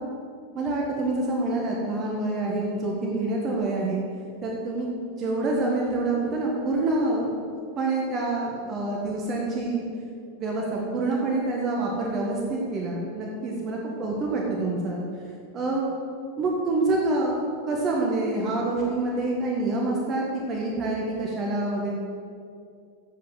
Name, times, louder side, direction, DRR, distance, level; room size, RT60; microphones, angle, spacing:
voice 1, 0.5-4.0 4.4-4.9 5.2-7.3 7.8-9.8 10.4-15.0 15.5-15.9 16.4-17.4 17.7-21.9, right 2 dB, 30° right, -2 dB, 1.7 m, -26 dB
8.5 x 7.8 x 7.6 m, 2.4 s
figure-of-eight pair, 90°, 0 cm